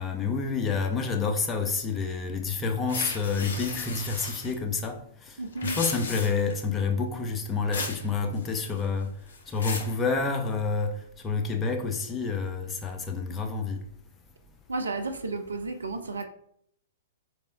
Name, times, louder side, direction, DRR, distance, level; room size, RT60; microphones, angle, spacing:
voice 1, 0.0-5.0 5.3-5.4 5.6-9.1 9.5-13.8, left 4 dB, 15° left, 0.6 m, -28 dB
sound 1, 2.9-4.5 5.5-6.5 7.7-8.0 8.4-8.8 9.3-9.9, left 4 dB, 65° left, 1.0 m, -35 dB
voice 2, 5.4-5.8 14.7-16.3, right 3 dB, 75° right, 0.4 m, -32 dB
4.2 x 3.4 x 2.5 m
figure-of-eight pair, 110°, 0 cm